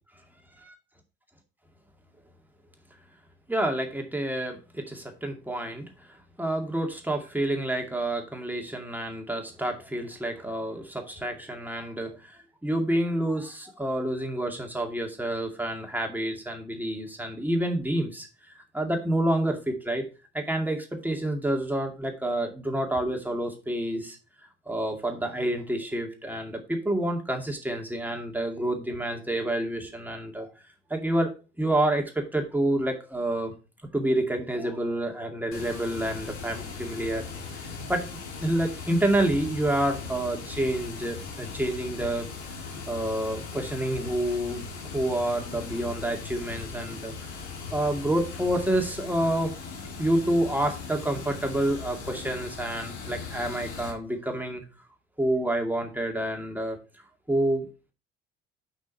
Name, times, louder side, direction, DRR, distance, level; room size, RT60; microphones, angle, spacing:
voice 1, 3.5-5.9 6.4-18.3 18.7-20.1 20.3-24.2 24.7-30.5 30.9-31.3 31.6-33.5 33.9-37.2 37.5-38.1 38.4-42.3 42.9-44.6 44.9-47.1 47.7-49.5 50.0-54.6 55.2-56.8 57.3-57.7, right 1 dB, 5° right, 3 dB, 2.2 m, -28 dB
Water, 35.5-53.9, left 5 dB, 75° left, 1.8 m, -39 dB
6.3 x 5.7 x 5.4 m, 0.33 s
figure-of-eight pair, 55°, 34 cm